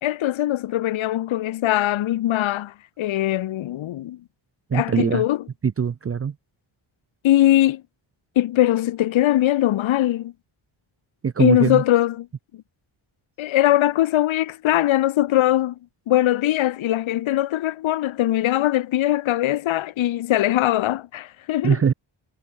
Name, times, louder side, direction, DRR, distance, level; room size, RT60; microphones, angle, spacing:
voice 1, 0.0-4.2 4.7-5.4 7.2-7.8 8.4-10.3 11.4-12.3 13.4-15.7 16.1-21.8, left 14 dB, 70° left, 0.8 m, -21 dB
voice 2, 4.7-5.2 5.8-6.3 11.2-11.8 21.6-21.9, right 7 dB, 30° right, 0.6 m, -21 dB
wide cardioid pair, 135°, 49 cm